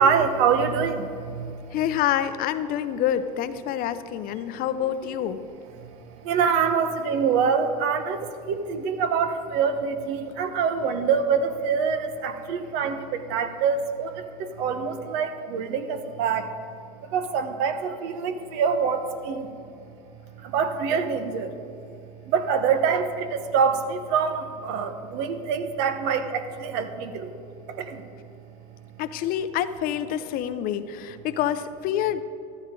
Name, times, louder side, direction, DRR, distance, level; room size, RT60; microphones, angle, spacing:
voice 1, 0.0-1.8 4.4-4.6 5.8-16.5 17.0-19.5 20.4-21.5 22.2-27.3 27.7-28.0, right 6 dB, 65° right, 8 dB, 1.2 m, -25 dB
voice 2, 1.7-5.4 29.0-32.2, left 10 dB, 50° left, 12 dB, 0.7 m, -27 dB
13.5 x 12.5 x 3.8 m, 2.5 s
hypercardioid pair, 100°, 19 cm